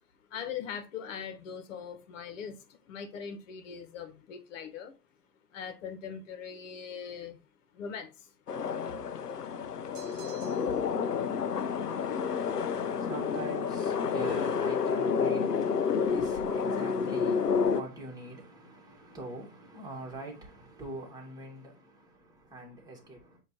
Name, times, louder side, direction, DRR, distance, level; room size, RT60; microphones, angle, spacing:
voice 1, 0.3-4.9 5.5-7.4 7.7-8.3, left 7 dB, 55° left, 1.5 m, -41 dB
sound 1, 8.5-17.8, left 6 dB, 85° left, 0.7 m, -30 dB
sound 2, 9.9-10.9, right 9 dB, 35° right, 1.2 m, -52 dB
voice 2, 11.6-23.4, right 2 dB, 10° right, 2.0 m, -44 dB
7.5 x 3.0 x 4.4 m
figure-of-eight pair, 105°, 46 cm